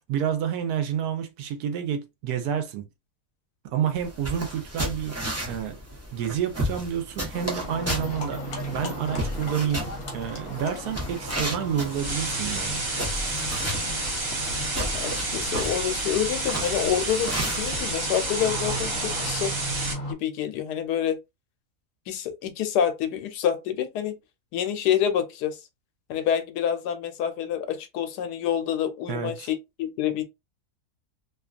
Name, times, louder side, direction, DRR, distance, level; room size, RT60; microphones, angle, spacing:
voice 1, 0.1-2.8 3.7-5.2 5.5-8.4 8.7-12.9 29.1-29.5, right 8 dB, 75° right, 1.1 m, -29 dB
sound 1, 3.9-17.8, equal, 20° right, 0.4 m, -34 dB
Livestock farm animals working animals, 7.3-20.1, equal, 55° left, 1.2 m, -37 dB
sound 2, 11.8-19.9, right 2 dB, 60° right, 1.5 m, -30 dB
voice 2, 14.8-19.5 20.1-21.2 22.1-24.2 24.5-25.6 26.1-30.2, left 9 dB, 90° left, 1.2 m, -27 dB
2.9 x 2.3 x 2.3 m
omnidirectional pair, 1.7 m